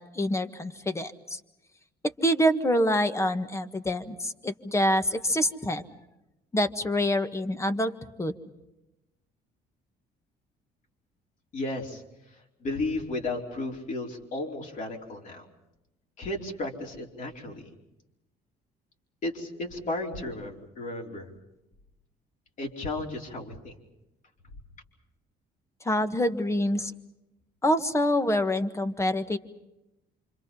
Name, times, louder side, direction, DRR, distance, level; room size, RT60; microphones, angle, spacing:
voice 1, 0.0-1.4 2.2-5.8 6.5-7.9 8.2-8.3 25.8-26.9 27.6-29.4, equal, 15° left, 9 dB, 1.6 m, -26 dB
voice 2, 11.5-12.0 12.6-15.4 16.2-17.7 19.2-21.3 22.6-23.7, left 2 dB, 50° left, 0 dB, 4.6 m, -34 dB
28.0 x 26.0 x 5.6 m, 0.92 s
cardioid pair, 110°, 17 cm